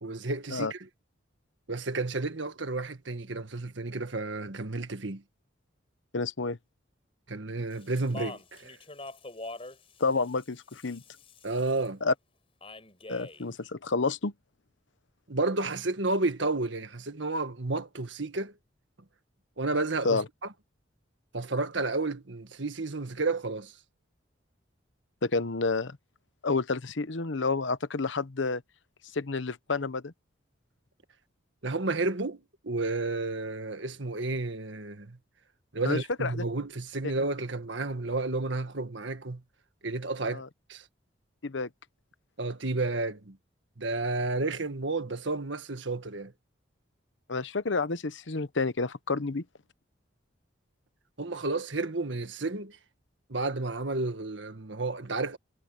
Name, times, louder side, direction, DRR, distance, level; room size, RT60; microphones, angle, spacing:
voice 1, 0.0-0.8 1.7-5.2 7.3-8.8 11.4-12.0 15.3-18.5 19.6-20.2 21.3-23.8 31.6-35.2 35.7-39.4 39.8-40.4 40.7-40.8 42.4-43.4 43.8-46.3 51.2-52.8 53.3-55.4, right 2 dB, 75° right, 1.7 m, -31 dB
voice 2, 6.1-6.6 10.0-11.0 12.0-12.1 13.1-14.3 20.0-20.2 25.2-26.0 26.4-28.6 29.1-30.1 35.8-36.4 40.3-40.5 41.4-41.7 47.3-49.4, left 3 dB, 75° left, 0.9 m, -29 dB
Speech, 7.7-11.9 12.6-13.5, left 2 dB, 30° left, 4.8 m, -44 dB
head